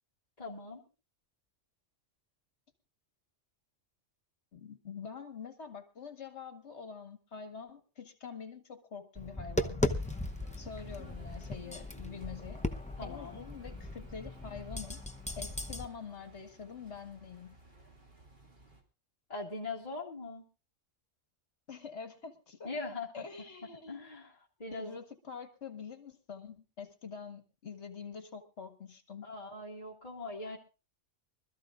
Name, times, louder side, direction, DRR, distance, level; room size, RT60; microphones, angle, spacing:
voice 1, 0.4-0.8 13.0-13.4 19.3-20.4 22.6-23.2 23.9-24.3 24.6-25.0 29.2-30.6, left 3 dB, 30° left, -4 dB, 2.5 m, -41 dB
voice 2, 4.5-10.0 10.6-12.6 13.0-15.0 15.4-17.6 21.7-22.7 23.1-24.0 24.7-29.3, left 6 dB, 60° left, 8 dB, 1.9 m, -46 dB
Tap, 9.2-15.8, left 1 dB, 5° left, 0.6 m, -37 dB
sound 1, 9.9-18.8, right 2 dB, 40° right, 2.6 m, -58 dB
25.0 x 13.5 x 2.5 m, 0.30 s
omnidirectional pair, 1.3 m